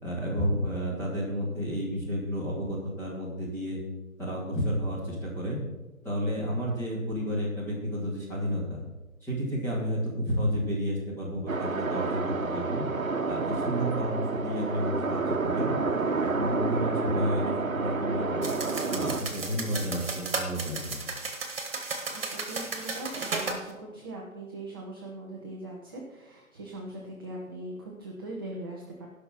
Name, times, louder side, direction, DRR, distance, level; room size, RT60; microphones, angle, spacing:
voice 1, 0.0-3.8 4.2-5.6 6.0-8.8 9.2-12.2 12.5-12.8 13.3-15.7 16.2-18.5 18.9-21.0, equal, 5° left, -8 dB, 2.5 m, -31 dB
sound 1, 11.5-19.2, right 3 dB, 75° right, 1.0 m, -29 dB
sound 2, 18.4-23.6, right 3 dB, 45° right, 2.0 m, -34 dB
voice 2, 22.1-29.1, right 2 dB, 15° right, -2 dB, 0.7 m, -40 dB
18.0 x 5.9 x 4.5 m, 1.1 s
figure-of-eight pair, 140°, 41 cm